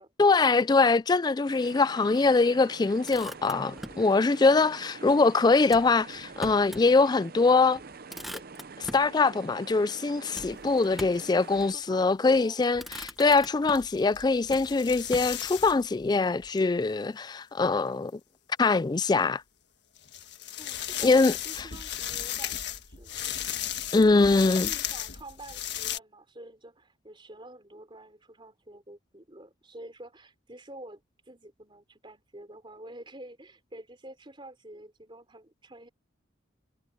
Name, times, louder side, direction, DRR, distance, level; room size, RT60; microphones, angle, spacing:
voice 1, 0.2-7.8 8.8-18.1 18.6-19.4 21.0-21.3 23.9-24.7, left 3 dB, 20° left, 0.3 m, -23 dB
sound 1, 1.5-11.7, right 4 dB, 50° right, 0.7 m, -46 dB
Motor vehicle (road), 2.8-4.1 5.7-6.9 7.3-7.4 7.7-9.1 10.3-11.3 12.2-12.4 12.8-14.0 14.5-15.7, equal, ahead, 0.9 m, -43 dB
sound 2, 10.4-10.8 11.1-11.2 11.5-11.7 12.6-16.6 18.1-18.2 19.0-19.1 20.0-26.0, left 11 dB, 60° left, 1.7 m, -36 dB
voice 2, 10.6-11.1 11.7-12.6 20.6-23.2 24.0-35.9, right 1 dB, 25° right, 3.8 m, -48 dB
head